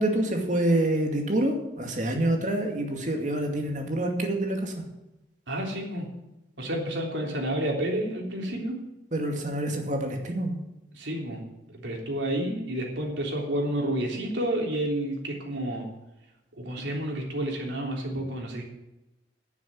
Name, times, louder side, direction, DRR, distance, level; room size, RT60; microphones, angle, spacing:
voice 1, 0.0-4.7 9.1-10.6, right 1 dB, 45° right, 3 dB, 2.3 m, -27 dB
voice 2, 5.5-6.1 6.6-8.8 10.9-11.4 11.7-15.9 16.6-18.6, right 1 dB, 85° right, 0 dB, 3.4 m, -30 dB
10.5 x 7.2 x 9.5 m, 0.97 s
head